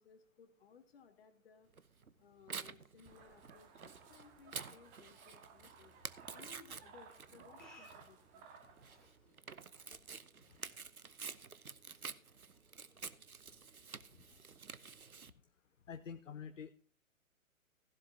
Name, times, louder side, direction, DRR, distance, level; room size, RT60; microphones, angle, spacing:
voice 1, 0.0-1.7 2.2-5.9 6.3-8.5, left 6 dB, 45° left, 8 dB, 2.2 m, -62 dB
Tearing, 1.8-15.3, right 5 dB, 85° right, 0.9 m, -50 dB
sound 1, 3.1-9.1, right 5 dB, 20° right, 1.9 m, -59 dB
sound 2, 7.2-12.8, left 2 dB, ahead, 4.6 m, -67 dB
voice 2, 15.9-16.7, left 7 dB, 60° left, 11 dB, 0.9 m, -46 dB
16.0 x 11.0 x 2.8 m, 0.42 s
figure-of-eight pair, 130°, 42 cm